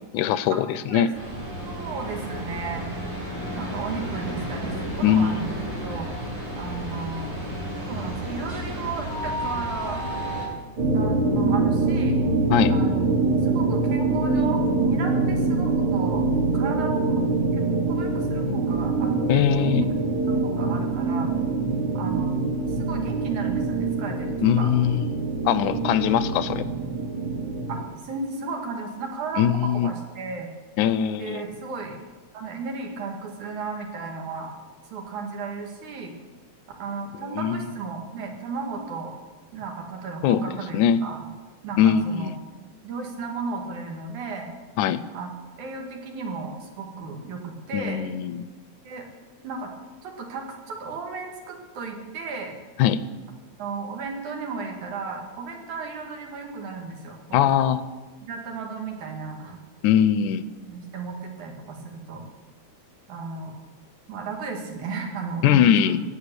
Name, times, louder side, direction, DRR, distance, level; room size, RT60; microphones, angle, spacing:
voice 1, 0.1-1.1 5.0-5.5 12.5-12.7 19.3-19.8 24.4-25.0 25.5-26.7 29.4-29.9 30.8-31.4 37.3-37.6 40.2-40.4 40.7-41.0 41.8-42.4 44.8-45.0 47.7-48.4 52.8-53.0 57.3-57.8 59.8-60.4 65.4-66.0, left 9 dB, 90° left, 15 dB, 2.1 m, -21 dB
sound 1, 1.1-10.5, equal, 65° right, 6.6 m, -32 dB
voice 2, 1.6-2.9 3.6-5.5 5.8-6.1 6.6-7.4 7.9-10.1 10.9-12.2 12.7-16.3 16.5-17.2 17.5-19.9 20.3-21.3 21.9-22.3 22.7-24.9 27.7-30.5 31.2-32.0 32.3-34.5 34.9-36.1 36.8-39.1 39.5-41.3 41.6-42.3 42.8-44.5 45.1-45.3 45.6-48.0 48.8-49.1 49.4-49.7 50.0-52.5 53.6-57.8 58.2-59.6 60.7-62.3 63.1-63.5 64.1-66.0, right 4 dB, 85° right, 2 dB, 3.3 m, -34 dB
sound 2, 10.8-27.8, right 3 dB, 50° right, 3.4 m, -24 dB
14.5 x 8.8 x 6.8 m, 1.2 s
omnidirectional pair, 3.3 m